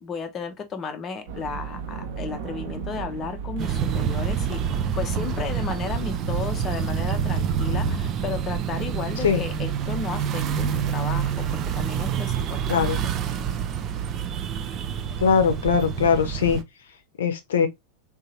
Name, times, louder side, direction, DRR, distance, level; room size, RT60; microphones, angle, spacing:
voice 1, 0.0-4.6 5.0-13.0, left 5 dB, 25° left, 0.6 m, -34 dB
sound 1, 1.3-8.4, right 4 dB, 55° right, 0.9 m, -35 dB
sound 2, 3.6-16.6, right 8 dB, 35° right, 0.5 m, -27 dB
voice 2, 15.2-16.6 17.2-17.7, left 6 dB, 65° left, 0.7 m, -21 dB
3.7 x 2.8 x 2.8 m
figure-of-eight pair, 90°, 0 cm